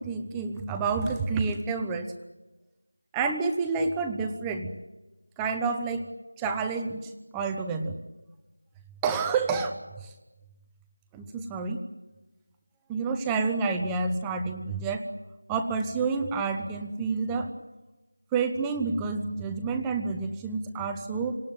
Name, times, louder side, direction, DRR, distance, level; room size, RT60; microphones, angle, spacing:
voice 1, 0.0-2.1 3.1-4.7 5.4-6.0 6.4-8.0 9.0-9.7 10.0-10.1 11.1-11.8 12.9-15.0 15.5-17.5 18.3-21.3, right 4 dB, 5° right, 5 dB, 0.9 m, -29 dB
27.5 x 19.0 x 9.1 m, 1.1 s
figure-of-eight pair, 175°, 0 cm